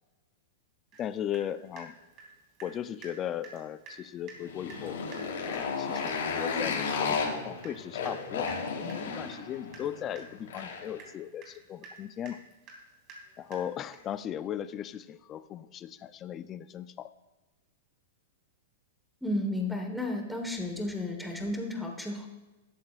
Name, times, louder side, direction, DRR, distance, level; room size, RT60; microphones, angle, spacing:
Water tap faucet / Drip, 0.9-1.1 1.3-2.8 3.0-3.2 3.4-3.6 3.9-4.0 4.3-4.4 4.7-14.2, right 3 dB, 30° right, 3.1 m, -50 dB
voice 1, 1.0-2.0 2.6-5.0 5.4-12.4 13.4-17.1, left 10 dB, 25° left, 13 dB, 0.4 m, -37 dB
Motorcycle, 4.4-11.0, left 5 dB, 85° left, 3.4 m, -33 dB
voice 2, 19.2-22.3, left 1 dB, ahead, 1 dB, 1.3 m, -33 dB
13.5 x 12.0 x 2.5 m, 1.1 s
supercardioid pair, 155°, 0 cm